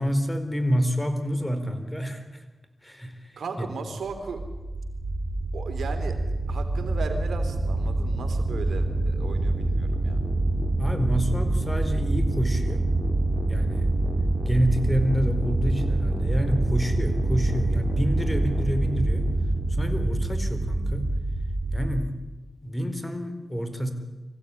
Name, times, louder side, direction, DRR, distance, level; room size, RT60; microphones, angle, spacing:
voice 1, 0.0-2.4 2.8-3.7 10.8-12.9 13.5-13.9 14.5-19.3 19.7-21.1 21.7-22.1 22.6-23.9, equal, 10° left, 8 dB, 4.5 m, -28 dB
voice 2, 3.4-4.4 5.5-10.2, right 4 dB, 85° right, 7 dB, 3.3 m, -36 dB
sound 1, 4.1-22.0, right 2 dB, 60° right, 3.5 m, -26 dB
25.0 x 15.5 x 10.0 m, 1.2 s
cardioid pair, 40°, 0 cm